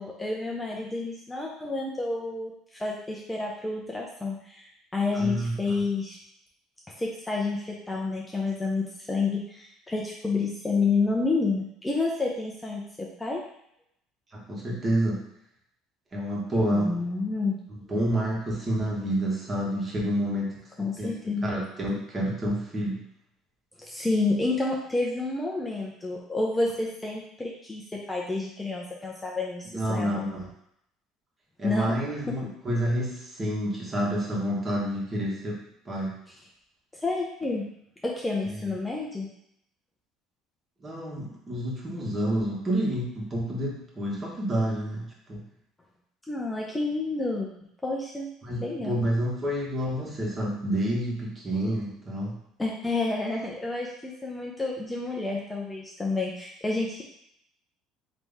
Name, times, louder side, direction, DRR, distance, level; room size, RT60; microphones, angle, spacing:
voice 1, 0.0-4.7 4.9-6.2 7.0-13.4 16.7-17.6 20.8-21.5 23.8-30.4 31.6-32.5 37.0-37.7 38.0-39.3 46.3-47.5 47.8-48.3 48.6-49.0 52.6-57.0, left 3 dB, 10° left, -3 dB, 0.7 m, -29 dB
voice 2, 5.1-5.5 14.3-15.2 16.1-16.9 17.9-21.1 21.4-23.0 29.7-30.5 31.6-36.1 38.5-38.6 40.8-45.4 48.4-52.4, right 1 dB, 30° right, -3 dB, 1.5 m, -29 dB
4.0 x 3.1 x 3.6 m, 0.73 s
supercardioid pair, 95°, 0 cm